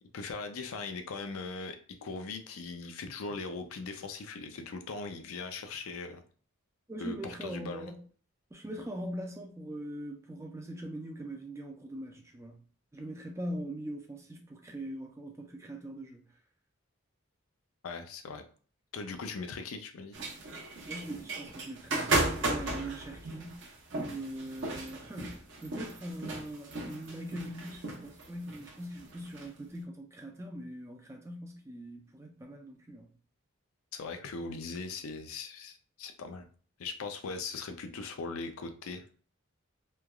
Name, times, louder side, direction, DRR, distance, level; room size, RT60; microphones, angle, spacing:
voice 1, 0.1-6.2 7.0-7.9 17.8-18.4 18.9-20.2 33.9-36.5 36.8-39.0, left 4 dB, 80° left, 0.4 m, -40 dB
voice 2, 6.9-8.0 8.5-12.6 12.9-16.3 20.9-23.7 24.0-33.1, right 1 dB, 15° right, 0.4 m, -41 dB
sound 1, 20.1-29.5, right 2 dB, 60° right, 0.7 m, -35 dB
3.2 x 2.2 x 2.2 m
head